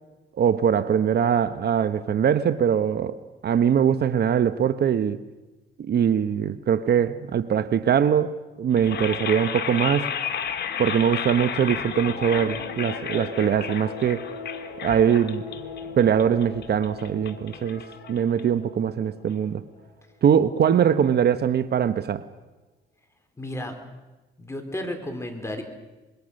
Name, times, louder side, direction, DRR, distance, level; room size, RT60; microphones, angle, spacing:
voice 1, 0.4-3.2 3.4-5.2 5.8-10.1 10.8-14.3 14.8-15.4 16.0-19.6 20.2-22.2, right 8 dB, 55° right, 12 dB, 1.0 m, -22 dB
sound 1, 8.7-18.8, left 8 dB, 60° left, 2.1 m, -33 dB
sound 2, 11.5-20.1, left 3 dB, 80° left, 4.5 m, -41 dB
voice 2, 23.4-23.7 24.4-25.6, left 1 dB, 15° left, 4 dB, 4.6 m, -32 dB
26.0 x 22.5 x 6.5 m, 1.1 s
cardioid pair, 90°, 20 cm